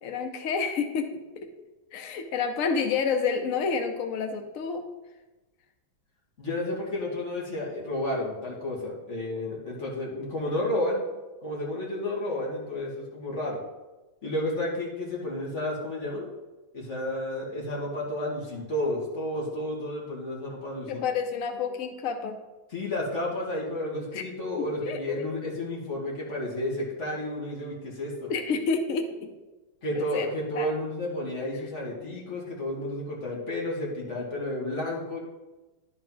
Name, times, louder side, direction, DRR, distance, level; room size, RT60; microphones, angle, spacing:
voice 1, 0.0-1.5 1.9-4.8 20.9-22.4 24.1-24.2 24.6-25.2 28.3-29.3 29.9-30.3 30.6-30.7, left 5 dB, 85° left, 6 dB, 0.7 m, -29 dB
voice 2, 6.4-11.0 11.4-13.6 14.2-16.3 16.7-21.0 22.7-28.3 29.8-35.2, left 1 dB, 35° left, -4 dB, 2.0 m, -31 dB
11.0 x 4.5 x 3.9 m, 1.1 s
omnidirectional pair, 2.2 m